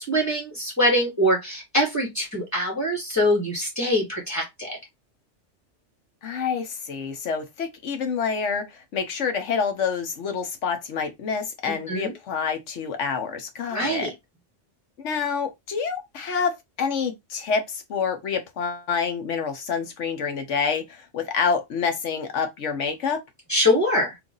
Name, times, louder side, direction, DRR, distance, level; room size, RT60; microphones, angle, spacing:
voice 1, 0.0-4.8 11.9-12.1 13.7-14.1 23.5-24.2, equal, 15° left, 2.0 m, -23 dB
voice 2, 6.2-14.1 15.0-23.2, left 6 dB, 75° left, 1.1 m, -27 dB
3.2 x 2.6 x 3.8 m
omnidirectional pair, 1.3 m